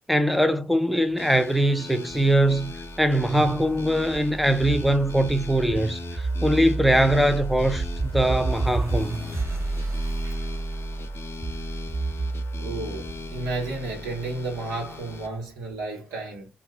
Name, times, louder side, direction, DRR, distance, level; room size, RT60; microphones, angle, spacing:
voice 1, 0.1-9.2, right 1 dB, ahead, 0.6 m, -22 dB
sound 1, 1.2-15.3, left 4 dB, 45° left, 0.7 m, -41 dB
sound 2, 2.1-15.3, right 2 dB, 50° right, 1.3 m, -31 dB
voice 2, 12.5-16.5, right 2 dB, 75° right, 1.2 m, -32 dB
2.5 x 2.5 x 3.4 m
hypercardioid pair, 40°, 6 cm